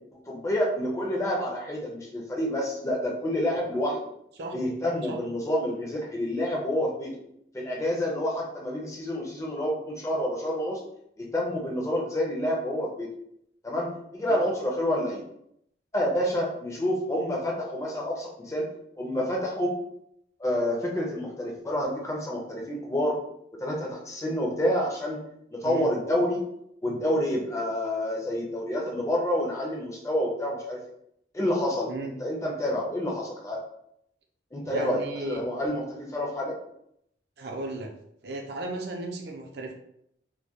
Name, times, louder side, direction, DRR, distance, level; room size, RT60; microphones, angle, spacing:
voice 1, 0.3-4.0 4.5-7.1 7.5-10.8 11.2-13.1 13.6-15.2 15.9-18.7 19.0-19.7 20.4-23.2 23.6-25.2 25.5-26.4 26.8-30.8 31.3-33.6 34.5-36.6, left 1 dB, 15° left, -2 dB, 0.4 m, -28 dB
voice 2, 34.6-35.4 37.4-37.9 38.2-39.7, right 2 dB, 60° right, 2 dB, 0.4 m, -35 dB
2.2 x 2.1 x 2.8 m, 0.74 s
head